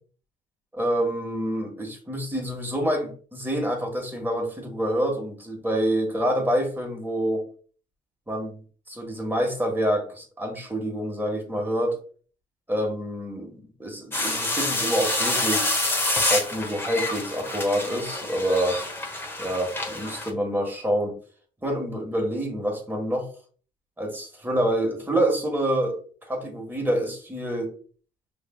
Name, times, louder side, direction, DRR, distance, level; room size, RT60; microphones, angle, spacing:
voice 1, 0.7-7.5 8.3-11.9 12.7-15.9 16.3-18.8 19.4-21.1 21.6-23.3 24.0-26.0 26.3-27.7, right 1 dB, 10° right, 1 dB, 1.5 m, -27 dB
sound 1, 14.1-20.3, left 2 dB, 15° left, 1.0 m, -27 dB
5.7 x 3.2 x 2.3 m, 0.42 s
cardioid pair, 110°, 17 cm